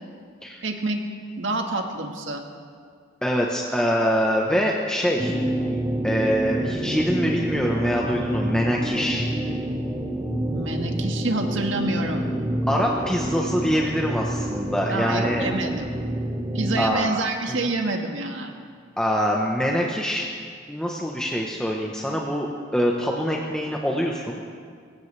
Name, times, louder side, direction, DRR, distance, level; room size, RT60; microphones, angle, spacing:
voice 1, 0.6-1.0 1.4-2.4 10.4-12.3 14.9-15.9 16.5-18.5, right 2 dB, 80° right, 3 dB, 1.7 m, -27 dB
voice 2, 3.2-5.4 6.0-9.3 12.7-15.5 16.8-17.2 17.5-17.6 19.0-20.2 20.7-24.4, equal, 5° left, -2 dB, 1.1 m, -24 dB
sound 1, 5.2-16.9, right 1 dB, 15° right, 1.2 m, -28 dB
23.0 x 17.0 x 3.4 m, 2.1 s
head